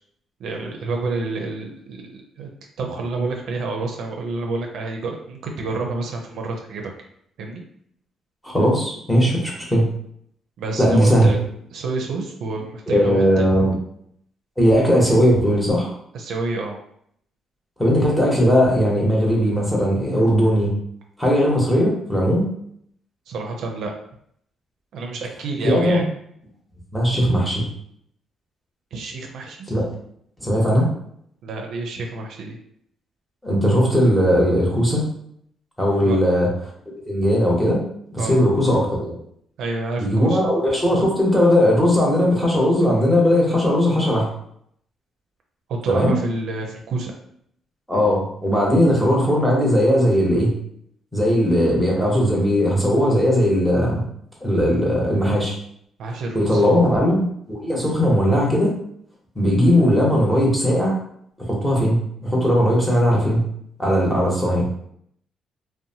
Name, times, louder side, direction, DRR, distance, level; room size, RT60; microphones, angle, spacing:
voice 1, 0.4-2.5 2.8-6.9 7.4-7.6 10.6-11.4 11.7-13.4 16.1-16.8 23.3-23.9 24.9-26.1 28.9-29.7 31.4-32.6 36.0-36.2 38.2-38.4 39.6-40.4 45.7-47.1 48.7-48.8 56.0-56.8, right 3 dB, 75° right, 1 dB, 0.5 m, -28 dB
voice 2, 8.4-9.9 10.8-11.3 12.9-13.7 14.6-15.9 17.8-20.7 21.2-22.5 25.6-26.0 26.9-27.7 29.7-29.8 30.4-30.9 33.4-35.1 35.8-36.5 37.1-37.8 38.1-39.1 40.0-44.3 45.9-46.1 47.9-50.5 51.1-54.0 54.4-55.6 56.3-58.7 59.3-61.0 61.4-63.5 63.8-64.7, equal, 5° left, -4 dB, 1.0 m, -18 dB
2.7 x 2.1 x 2.7 m, 0.69 s
cardioid pair, 90°, 0 cm